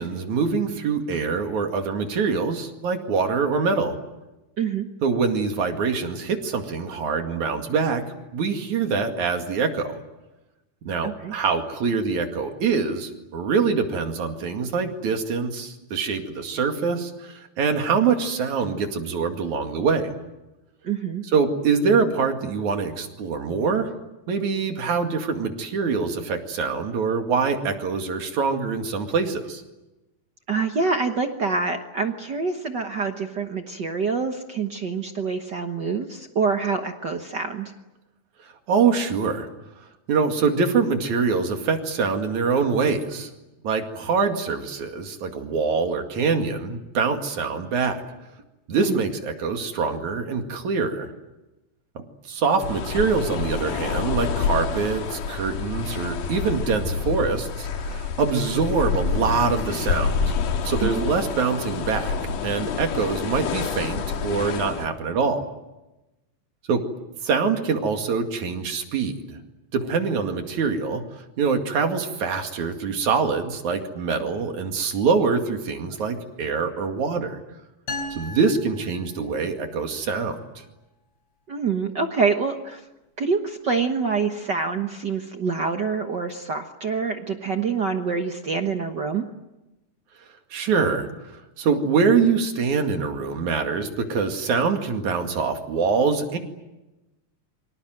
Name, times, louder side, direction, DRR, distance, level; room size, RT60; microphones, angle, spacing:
voice 1, 0.0-4.0 5.0-8.0 8.3-10.0 10.9-20.1 21.3-23.9 24.3-29.6 38.7-39.5 40.1-43.3 43.6-48.0 48.7-51.1 52.0-60.2 60.6-62.1 62.4-65.4 66.7-66.8 67.2-69.4 69.7-71.0 71.4-77.4 78.1-80.4 90.5-96.4, right 5 dB, 70° right, 5 dB, 3.6 m, -24 dB
voice 2, 4.6-4.9 11.0-11.3 20.8-21.2 30.5-37.7 48.8-49.0 60.8-61.0 81.5-82.8 83.2-89.3, right 5 dB, 50° right, 5 dB, 1.3 m, -26 dB
sound 1, 52.6-64.9, left 5 dB, 85° left, 3.2 m, -28 dB
sound 2, 77.9-79.6, left 2 dB, 55° left, 5.6 m, -36 dB
28.0 x 25.0 x 7.8 m, 1.0 s
omnidirectional pair, 3.6 m